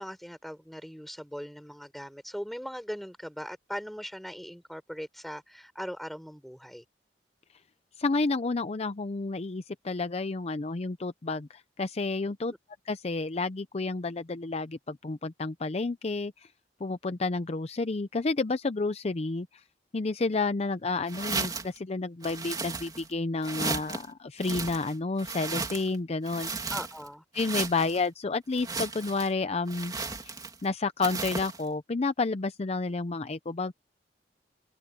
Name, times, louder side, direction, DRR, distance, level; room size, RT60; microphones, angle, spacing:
voice 1, 0.0-6.8 26.7-27.2, equal, ahead, 5.1 m, -40 dB
voice 2, 8.0-12.5 12.9-16.5 16.8-19.5 19.9-26.7 27.3-29.9 30.2-30.3 30.6-33.7, left 3 dB, 35° left, 0.6 m, -30 dB
sound 1, 21.1-21.8 22.2-23.1 23.4-24.0 24.4-26.0 26.3-27.1 27.4-28.0 28.5-29.3 29.7-30.6 31.0-31.6, right 4 dB, 25° right, 3.1 m, -35 dB
head